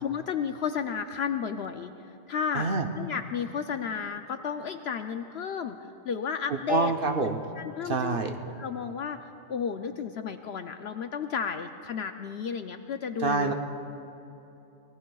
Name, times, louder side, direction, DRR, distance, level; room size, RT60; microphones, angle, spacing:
voice 1, 0.0-1.9 2.3-2.7 3.0-6.9 7.6-8.2 8.6-13.5, left 7 dB, 65° left, 7 dB, 0.7 m, -33 dB
voice 2, 2.5-2.9 6.5-7.4 7.8-8.4 13.2-13.5, right 3 dB, 50° right, 4 dB, 0.8 m, -26 dB
24.5 x 19.5 x 2.3 m, 2.9 s
omnidirectional pair, 1.4 m